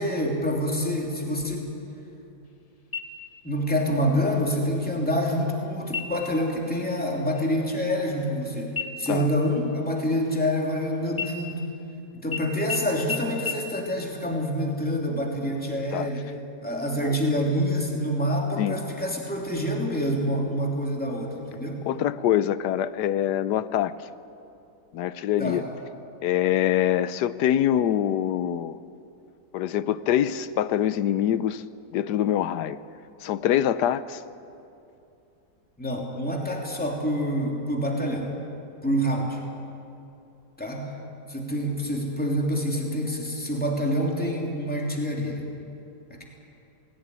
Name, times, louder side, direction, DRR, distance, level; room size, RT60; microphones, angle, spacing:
voice 1, 0.0-1.7 3.4-11.6 12.2-16.3 16.6-21.8 25.4-25.6 35.8-38.3 38.8-39.4 40.6-40.9 41.3-45.5 46.1-46.2, equal, 5° left, 2.9 m, -27 dB
sound 1, 2.9-3.6 4.0-4.1 4.6-5.2 5.8-6.4 6.8-7.0 7.3-8.4 8.8-10.8 11.1-11.9 12.3-12.4 12.7-12.8 13.1-13.2 13.5-13.6, left 5 dB, 25° left, 0.9 m, -35 dB
voice 2, 21.9-23.9 24.9-25.6 26.2-28.8 29.5-31.6 31.9-32.8 33.2-34.2, left 11 dB, 75° left, 1.3 m, -24 dB
19.5 x 17.0 x 9.7 m
omnidirectional pair, 1.9 m